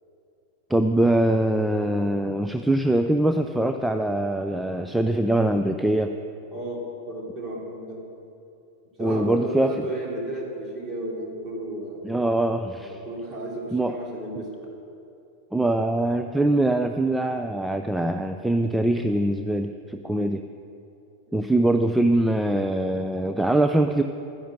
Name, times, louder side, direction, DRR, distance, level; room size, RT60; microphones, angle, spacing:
voice 1, 0.7-6.1 9.0-9.9 12.0-13.0 13.7-13.9 15.5-20.4 21.3-24.0, right 1 dB, 5° right, 7 dB, 0.5 m, -23 dB
voice 2, 6.5-8.0 9.0-12.1 12.8-14.5 20.1-20.3 21.3-21.6, right 1 dB, 25° right, -2 dB, 3.3 m, -34 dB
12.5 x 10.0 x 6.4 m, 2.7 s
figure-of-eight pair, 90°, 0 cm